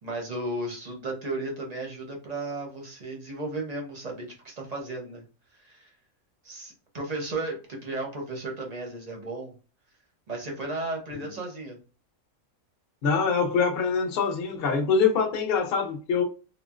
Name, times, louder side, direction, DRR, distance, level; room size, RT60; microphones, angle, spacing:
voice 1, 0.0-5.2 5.5-5.9 6.4-9.5 10.3-11.8, right 2 dB, 45° right, 0.5 m, -34 dB
voice 2, 13.0-16.2, left 5 dB, 55° left, 0.7 m, -24 dB
3.7 x 2.0 x 2.4 m
omnidirectional pair, 1.5 m